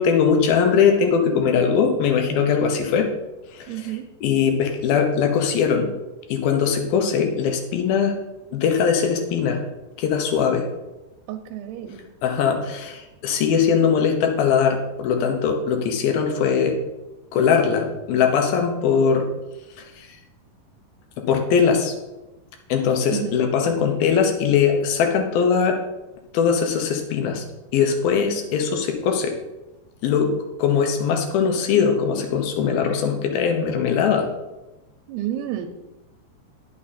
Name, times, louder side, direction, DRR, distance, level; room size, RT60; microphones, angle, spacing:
voice 1, 0.0-3.1 3.6-5.9 6.3-8.1 8.5-9.6 10.0-10.6 12.2-16.8 17.3-19.3 20.0-20.1 21.2-21.9 22.7-25.8 26.3-27.4 27.7-29.3 30.0-30.3 30.6-34.3, left 6 dB, 75° left, 3 dB, 2.6 m, -20 dB
voice 2, 3.7-4.1 11.3-12.0 23.1-23.4 35.1-35.7, right 12 dB, 90° right, 4 dB, 2.7 m, -30 dB
9.4 x 6.3 x 4.2 m, 1.0 s
omnidirectional pair, 4.6 m